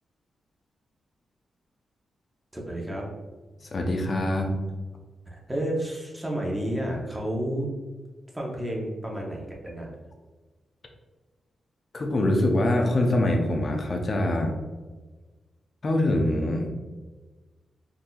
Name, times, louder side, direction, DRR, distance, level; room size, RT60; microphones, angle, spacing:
voice 1, 2.5-3.1 5.3-7.7 8.3-9.9, right 1 dB, 10° right, -2 dB, 0.9 m, -31 dB
voice 2, 3.6-4.5 11.9-14.5 15.8-16.7, left 1 dB, 40° left, 2 dB, 0.5 m, -24 dB
3.9 x 2.7 x 2.3 m, 1.3 s
cardioid pair, 90°, 0 cm